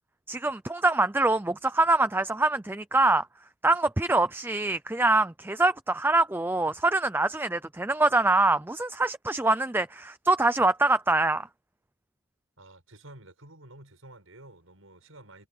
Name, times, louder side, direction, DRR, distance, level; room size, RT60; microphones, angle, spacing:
voice 1, 0.3-3.3 3.6-11.5, right 2 dB, 10° right, 0.5 m, -24 dB
voice 2, 12.6-15.5, right 1 dB, 85° right, 7.5 m, -50 dB
head